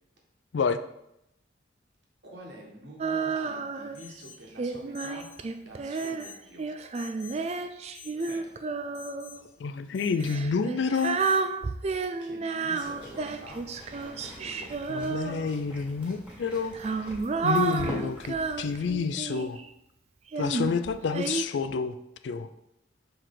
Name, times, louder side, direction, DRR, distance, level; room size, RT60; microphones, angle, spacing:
voice 1, 2.2-6.8 8.2-8.5 12.2-13.7 14.0-15.1, right 1 dB, 65° right, -1 dB, 1.6 m, -47 dB
Female singing, 3.0-4.0 4.6-9.4 10.2-15.7 16.5-19.6 20.3-21.4, right 4 dB, 35° right, 0.3 m, -31 dB
Alarm, 3.9-4.4 4.9-5.4 5.9-6.4 6.9-7.4 7.9-8.4 8.9-9.4 9.9-10.4 10.9-11.4, left 7 dB, 90° left, 1.8 m, -48 dB
voice 2, 9.6-11.2 14.9-17.1 17.4-19.6 20.4-22.0 22.2-22.5, left 5 dB, 70° left, 11 dB, 0.4 m, -29 dB
sound 1, 12.8-18.9, equal, 5° right, 2.0 m, -44 dB
6.3 x 4.6 x 3.9 m, 0.83 s
head